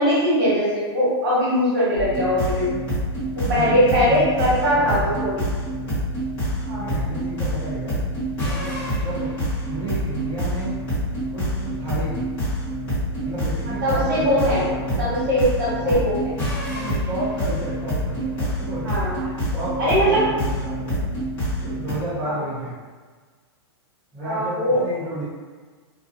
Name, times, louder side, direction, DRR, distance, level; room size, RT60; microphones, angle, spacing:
voice 1, 0.0-2.8 3.4-5.4 6.6-6.9 13.8-14.7 15.0-16.3 18.8-19.2 19.8-20.2 22.2-22.4 24.2-24.8, equal, 50° right, -10 dB, 1.3 m, -21 dB
sound 1, 2.0-21.9, equal, 20° left, 1.3 m, -27 dB
voice 2, 3.4-5.2 6.8-8.0 8.4-9.3 9.6-10.8 11.3-12.3 13.2-15.1 15.5-15.9 16.6-21.0 21.5-22.7 24.1-25.2, right 1 dB, 5° right, -18 dB, 0.7 m, -32 dB
2.4 x 2.3 x 2.6 m, 1.4 s
supercardioid pair, 165°, 14 cm